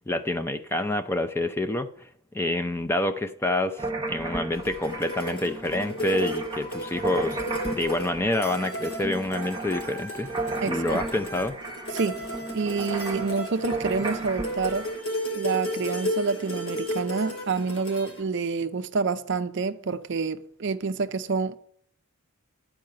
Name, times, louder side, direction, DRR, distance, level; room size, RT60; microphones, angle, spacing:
voice 1, 0.1-2.1 2.3-10.3 10.6-11.5, left 1 dB, 10° left, 0.4 m, -27 dB
sound 1, 3.8-15.0, right 2 dB, 20° right, 0.9 m, -35 dB
sound 2, 4.5-18.2, equal, 75° left, 2.5 m, -34 dB
voice 2, 10.6-11.0 11.9-12.2 12.5-14.9 15.3-21.6, right 4 dB, 55° right, 0.5 m, -28 dB
10.5 x 4.8 x 7.5 m
head